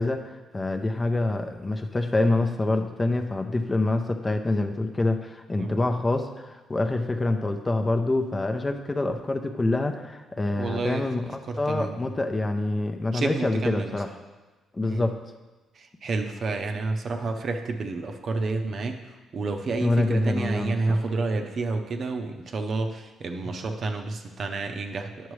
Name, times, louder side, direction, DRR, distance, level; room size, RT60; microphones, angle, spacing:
voice 1, 0.0-11.2 11.6-14.1 14.7-15.1 19.8-21.0, left 2 dB, 25° left, 5 dB, 0.6 m, -26 dB
voice 2, 10.5-11.0 11.5-12.2 13.1-14.0 14.8-15.0 15.7-25.3, right 3 dB, 50° right, 5 dB, 0.7 m, -30 dB
9.1 x 5.9 x 3.2 m, 1.2 s
cardioid pair, 90°, 0 cm